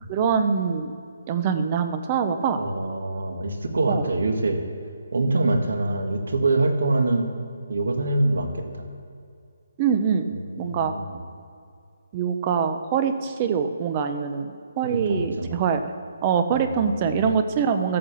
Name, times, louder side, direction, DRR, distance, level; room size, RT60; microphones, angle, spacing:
voice 1, 0.1-0.9 1.3-2.6 3.9-4.0 9.8-10.3 10.6-10.9 12.1-15.9 16.2-18.0, right 6 dB, 20° right, 8 dB, 0.5 m, -24 dB
voice 2, 2.5-4.6 5.1-7.3 7.7-8.8 10.3-11.2 14.8-15.5 16.5-17.3, right 2 dB, 70° right, 4 dB, 1.9 m, -25 dB
13.5 x 8.6 x 6.9 m, 2.4 s
hypercardioid pair, 175°, 0 cm